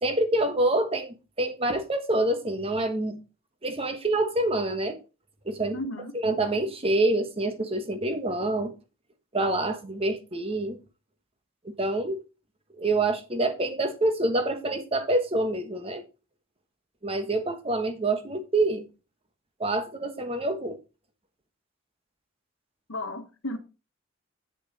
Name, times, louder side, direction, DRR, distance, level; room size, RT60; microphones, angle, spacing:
voice 1, 0.0-3.2 3.6-5.0 5.4-5.8 6.1-8.7 9.3-10.8 11.6-12.2 12.8-16.0 17.0-18.9 19.6-20.8, right 2 dB, 30° right, 1.3 m, -26 dB
voice 2, 5.7-6.2 22.9-23.6, left 1 dB, 80° left, 1.3 m, -34 dB
8.8 x 6.6 x 4.1 m
head